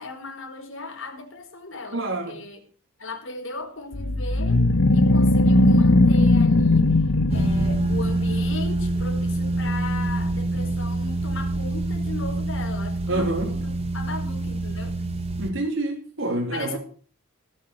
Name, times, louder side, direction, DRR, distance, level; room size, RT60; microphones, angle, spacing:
voice 1, 0.0-2.0 2.3-2.6 3.0-4.6 4.9-7.0 7.3-15.0 16.5-16.8, left 3 dB, 65° left, 3 dB, 4.5 m, -37 dB
voice 2, 1.9-2.4 13.1-13.5 15.4-16.8, right 2 dB, 60° right, 2 dB, 2.7 m, -27 dB
sound 1, 3.9-8.3, left 2 dB, 80° left, 1.1 m, -18 dB
sound 2, 7.3-15.5, right 2 dB, 25° right, 3.1 m, -26 dB
18.0 x 7.5 x 7.8 m, 0.43 s
head